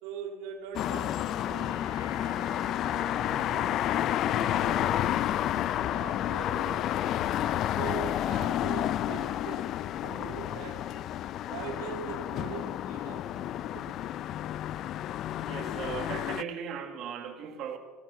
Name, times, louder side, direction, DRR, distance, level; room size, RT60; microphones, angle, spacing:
voice 1, 0.0-1.8 2.3-2.5 3.2-5.1 5.9-7.0 7.7-10.9 11.5-14.0, right 7 dB, 75° right, 2 dB, 2.3 m, -42 dB
sound 1, 0.7-16.4, left 12 dB, 45° left, 0.3 m, -30 dB
Bowed string instrument, 0.9-6.7, left 7 dB, 80° left, 4.0 m, -41 dB
voice 2, 15.4-17.8, right 8 dB, 50° right, 6 dB, 1.5 m, -37 dB
17.0 x 7.4 x 7.0 m, 1.5 s
cardioid pair, 140°, 0 cm